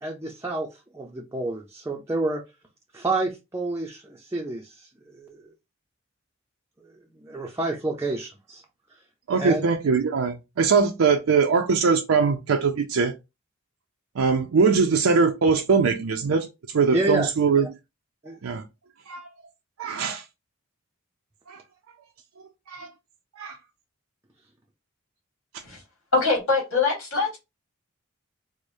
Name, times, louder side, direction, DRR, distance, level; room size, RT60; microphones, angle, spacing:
voice 1, 0.0-2.4 2.9-5.5 6.8-8.6 9.3-9.6 16.9-17.3 18.2-18.4, right 2 dB, 15° right, 0.5 m, -29 dB
voice 2, 9.3-13.1 14.2-16.5 16.7-17.7 18.4-18.6 19.1-19.3 19.8-20.2 21.5-21.6 22.7-22.9 23.4-23.6, right 5 dB, 75° right, 0.5 m, -21 dB
voice 3, 26.1-27.4, left 3 dB, 75° left, 2.0 m, -23 dB
4.7 x 2.1 x 2.6 m
head